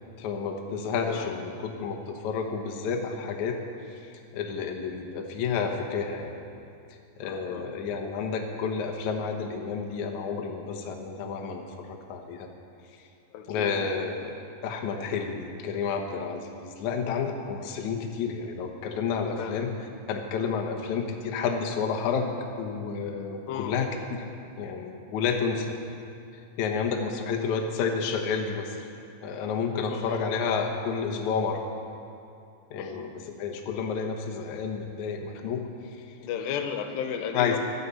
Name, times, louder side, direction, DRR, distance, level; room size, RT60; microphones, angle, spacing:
voice 1, 0.2-3.6 3.9-4.1 4.3-6.3 7.2-12.5 13.5-19.7 20.1-23.9 24.2-24.3 24.6-25.8 26.3-28.9 29.2-31.6 32.7-36.0 37.3-37.6, left 5 dB, 70° left, 3 dB, 1.9 m, -30 dB
voice 2, 1.1-1.4 7.3-7.6 13.3-13.7 19.4-19.6 23.5-23.7 29.9-30.2 32.8-33.1 35.4-35.5 36.2-37.6, left 8 dB, 85° left, 6 dB, 3.0 m, -34 dB
15.5 x 11.5 x 5.6 m, 2.5 s
omnidirectional pair, 4.8 m